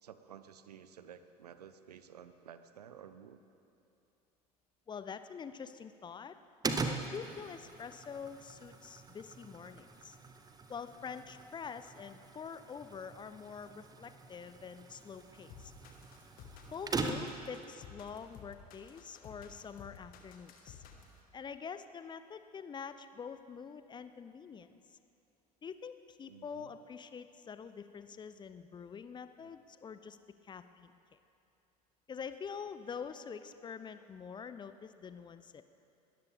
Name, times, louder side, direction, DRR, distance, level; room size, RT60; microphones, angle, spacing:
voice 1, 0.0-3.4 26.3-26.8 29.4-29.5, right 8 dB, 75° right, 12 dB, 0.7 m, -53 dB
voice 2, 4.9-6.4 6.8-10.2 10.7-15.7 16.7-20.8 21.3-24.8 25.6-30.2 30.4-31.2 32.1-35.6, left 6 dB, 20° left, 11 dB, 0.6 m, -46 dB
sound 1, 6.6-17.5, right 4 dB, 20° right, 1.0 m, -42 dB
sound 2, 15.5-21.2, left 7 dB, 45° left, 1.7 m, -53 dB
21.0 x 13.5 x 3.6 m, 2.7 s
figure-of-eight pair, 70°, 21 cm